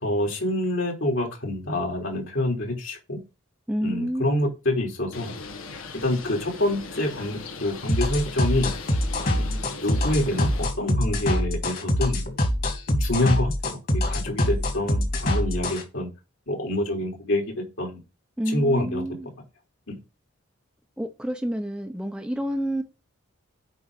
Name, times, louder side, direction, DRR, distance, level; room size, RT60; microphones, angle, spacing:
voice 1, 0.0-3.2 3.8-5.3 6.0-8.7 9.4-12.3 12.9-16.1 16.5-18.0 18.5-19.0 19.9-20.0, left 1 dB, 65° left, 3.6 m, -26 dB
voice 2, 3.7-4.5 18.4-19.3 21.0-22.8, equal, 5° right, 0.8 m, -29 dB
Bird, 5.1-10.7, left 3 dB, 80° left, 1.5 m, -39 dB
sound 1, 7.9-15.8, left 1 dB, 45° left, 2.6 m, -24 dB
8.2 x 5.4 x 5.0 m
head